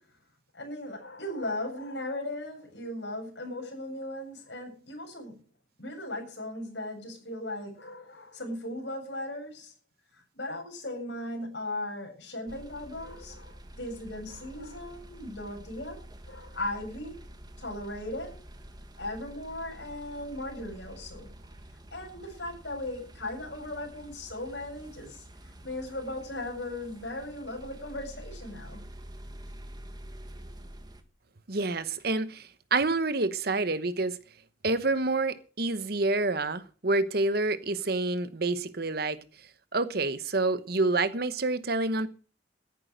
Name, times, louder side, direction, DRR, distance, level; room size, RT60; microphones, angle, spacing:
voice 1, 0.5-5.4 5.8-9.7 10.3-16.0 16.2-17.2 17.6-18.4 19.0-21.3 21.9-25.2 25.6-28.8, left 1 dB, 65° left, 8.0 m, -37 dB
sound 1, 12.5-31.0, right 1 dB, 20° right, 1.6 m, -48 dB
voice 2, 31.5-34.2 34.6-39.2 39.7-42.1, right 3 dB, 55° right, 1.1 m, -28 dB
14.5 x 10.5 x 6.6 m
head